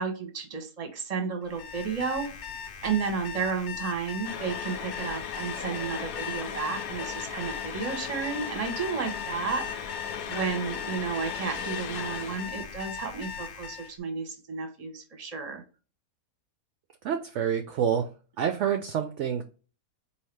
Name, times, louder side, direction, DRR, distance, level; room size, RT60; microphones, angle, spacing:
voice 1, 0.0-2.3 2.8-9.7 10.3-15.6, right 5 dB, 30° right, 5 dB, 0.9 m, -32 dB
Alarm, 1.4-13.9, left 7 dB, 60° left, 0.8 m, -39 dB
sound 1, 4.2-12.5, left 7 dB, 85° left, 1.2 m, -37 dB
voice 2, 17.0-18.1 18.4-19.4, right 8 dB, 65° right, 7 dB, 0.7 m, -27 dB
4.7 x 2.9 x 3.2 m, 0.34 s
omnidirectional pair, 1.6 m